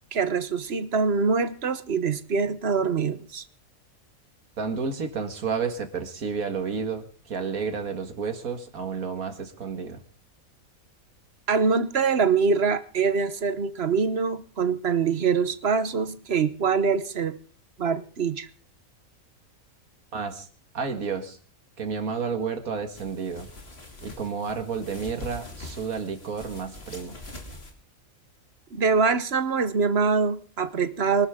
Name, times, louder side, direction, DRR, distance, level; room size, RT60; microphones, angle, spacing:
voice 1, 0.1-3.4 11.5-17.4 17.8-18.5 28.7-31.3, right 5 dB, 50° right, 13 dB, 1.2 m, -24 dB
voice 2, 4.6-10.0 20.1-20.5 20.7-21.4 21.8-23.5 24.0-27.2, right 5 dB, 85° right, 7 dB, 2.2 m, -31 dB
sound 1, 22.9-27.7, left 2 dB, 45° left, 3.0 m, -43 dB
24.0 x 12.5 x 3.7 m, 0.40 s
omnidirectional pair, 1.5 m